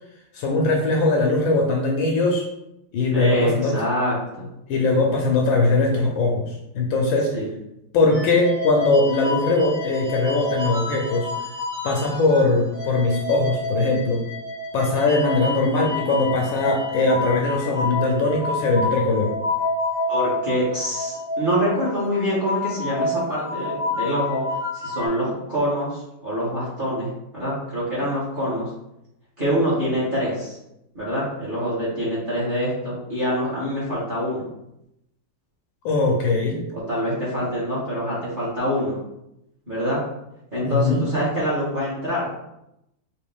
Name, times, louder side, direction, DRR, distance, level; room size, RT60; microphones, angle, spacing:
voice 1, 0.3-2.4 2.9-3.7 4.7-6.5 6.7-7.3 7.9-11.3 11.8-14.2 14.7-19.3 35.8-36.6 40.6-41.0, left 3 dB, 70° left, 0 dB, 1.3 m, -20 dB
voice 2, 3.1-4.5 7.3-7.5 20.1-24.4 24.7-28.7 29.4-30.6 30.9-34.4 36.7-39.0 39.7-40.0 40.5-42.3, equal, 25° right, -8 dB, 1.4 m, -25 dB
sound 1, 8.1-12.4 12.7-25.1, left 2 dB, 60° right, 1.7 m, -29 dB
4.2 x 2.9 x 3.5 m, 0.85 s
omnidirectional pair, 2.4 m